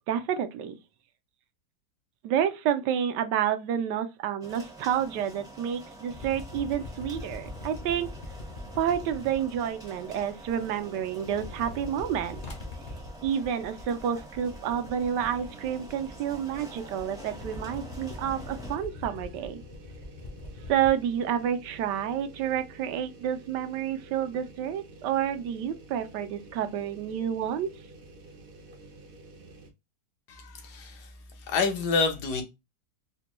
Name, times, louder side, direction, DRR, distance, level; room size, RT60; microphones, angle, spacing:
voice 1, 0.1-0.8 2.2-8.1 8.8-12.4 13.2-19.6 20.7-27.7, right 9 dB, 90° right, 1.2 m, -29 dB
sound 1, 4.4-18.8, right 1 dB, 5° right, 0.4 m, -47 dB
sound 2, 6.1-10.8 11.1-20.9, left 2 dB, 45° left, 0.6 m, -43 dB
sound 3, 10.6-12.7 13.1-13.2 14.4-29.7, right 2 dB, 65° right, 0.5 m, -49 dB
voice 2, 30.3-31.1 31.5-32.4, left 4 dB, 75° left, 1.3 m, -28 dB
4.1 x 2.2 x 2.9 m
omnidirectional pair, 1.8 m